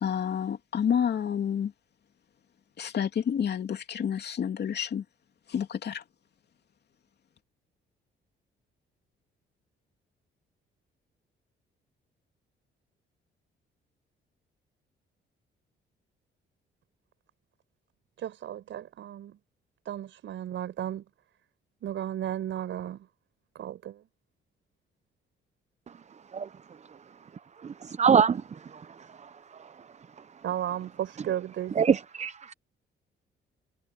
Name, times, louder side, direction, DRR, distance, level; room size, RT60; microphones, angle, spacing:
voice 1, 0.0-1.7 2.8-5.0 5.5-6.0, left 8 dB, 55° left, 2.9 m, -29 dB
voice 2, 18.2-19.4 19.8-21.1 21.8-23.1 23.5-24.1 30.4-31.8, right 11 dB, 75° right, 6.5 m, -34 dB
voice 3, 27.6-28.9 29.2-29.3 31.8-32.5, right 7 dB, 35° right, 0.8 m, -25 dB
cardioid pair, 90°, 20 cm